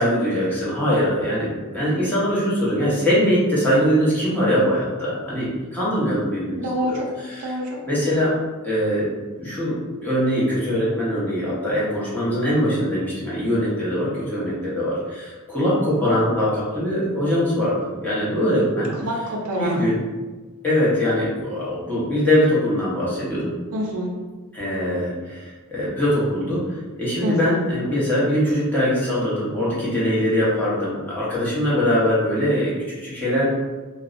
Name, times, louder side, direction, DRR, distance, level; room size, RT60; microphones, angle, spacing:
voice 1, 0.0-7.0 7.4-7.5 7.9-8.3 8.6-9.0 9.4-15.0 15.5-17.8 18.0-18.9 19.6-19.9 20.6-23.5 24.5-25.1 25.7-26.6 27.0-32.7 33.0-33.5, equal, 10° left, -9 dB, 0.8 m, -22 dB
voice 2, 6.6-7.1 7.4-7.8 18.9-19.9 23.7-24.2 27.2-27.6, equal, 75° right, -2 dB, 0.4 m, -26 dB
2.5 x 2.0 x 2.4 m, 1.3 s
head